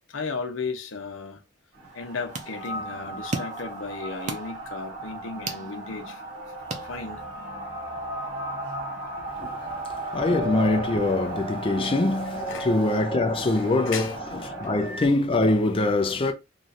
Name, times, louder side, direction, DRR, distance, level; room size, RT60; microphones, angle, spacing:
voice 1, 0.1-1.4 1.9-6.2 6.8-7.2 9.2-9.3 12.5-12.7 13.6-14.2 14.6-14.7, left 4 dB, 80° left, 0.7 m, -35 dB
sound 1, 1.7-14.8, right 3 dB, 60° right, 1.1 m, -37 dB
sound 2, 1.8-7.5, right 3 dB, 40° right, 0.7 m, -39 dB
sound 3, 2.6-15.1, left 1 dB, 15° right, 0.9 m, -38 dB
voice 2, 10.1-16.3, left 2 dB, 30° left, 0.4 m, -24 dB
3.1 x 2.5 x 4.0 m
head